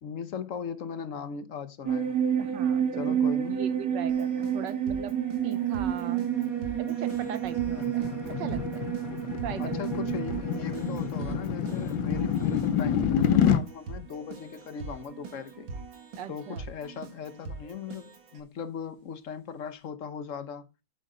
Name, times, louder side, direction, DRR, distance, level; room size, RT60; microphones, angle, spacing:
voice 1, 0.0-2.1 3.0-3.6 9.6-15.7 16.3-20.7, left 7 dB, 50° left, 1.1 m, -39 dB
sound 1, 1.9-13.8 14.1-14.2, right 9 dB, 50° right, 2.2 m, -30 dB
voice 2, 2.4-3.2 3.5-5.2 5.4-6.3 6.8-9.0 9.4-9.9 16.2-16.6, right 9 dB, 70° right, 1.5 m, -40 dB
Keyboard (musical), 4.1-18.4, right 3 dB, 85° right, 2.7 m, -43 dB
sound 2, 7.2-13.6, left 8 dB, 85° left, 1.5 m, -28 dB
9.3 x 8.0 x 3.8 m
omnidirectional pair, 2.1 m